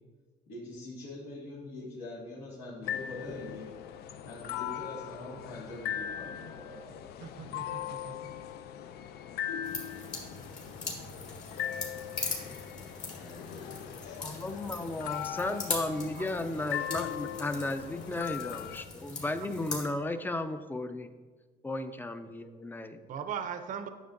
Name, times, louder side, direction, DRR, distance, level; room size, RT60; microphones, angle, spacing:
voice 1, 0.5-3.7 4.2-7.0 13.1-14.4, left 2 dB, 85° left, -10 dB, 2.0 m, -44 dB
sound 1, 2.8-18.8, left 10 dB, 70° left, 0.4 m, -40 dB
voice 2, 7.2-8.1 16.1-16.2 23.1-23.9, right 7 dB, 50° right, 8 dB, 0.5 m, -39 dB
sound 2, 9.6-19.8, left 3 dB, 45° left, 1.9 m, -41 dB
voice 3, 14.2-21.1 21.6-23.0, left 2 dB, 10° left, 10 dB, 0.4 m, -34 dB
9.2 x 6.4 x 2.6 m, 1.4 s
cardioid pair, 110°, 17 cm